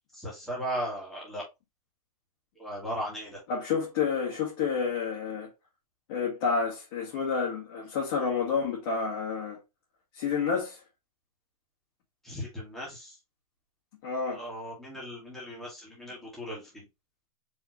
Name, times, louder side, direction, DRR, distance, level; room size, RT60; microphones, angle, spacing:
voice 1, 0.2-1.4 2.6-3.4 12.2-13.1 14.3-16.6, equal, ahead, 1.8 m, -37 dB
voice 2, 3.5-5.5 6.1-9.6 10.1-10.8 14.0-14.4, left 5 dB, 40° left, 1.7 m, -29 dB
4.7 x 3.4 x 2.9 m
hypercardioid pair, 160°, 19 cm